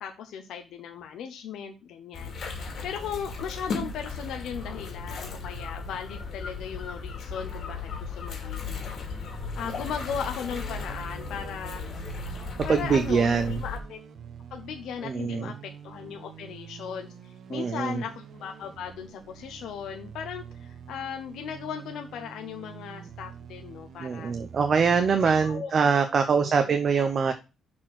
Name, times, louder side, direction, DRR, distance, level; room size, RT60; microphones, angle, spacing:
voice 1, 0.0-9.0 9.6-11.8 12.6-14.0 14.5-24.3 24.9-25.7 26.0-26.7, left 7 dB, 80° left, 4 dB, 0.8 m, -37 dB
sound 1, 2.1-13.8, left 4 dB, 55° left, 2.3 m, -36 dB
sound 2, 8.7-25.6, right 7 dB, 60° right, 1.0 m, -46 dB
voice 2, 12.7-13.6 15.0-15.5 17.5-18.0 24.0-27.3, right 5 dB, 40° right, 8 dB, 0.7 m, -24 dB
6.5 x 4.4 x 6.0 m, 0.30 s
cardioid pair, 120°, 0 cm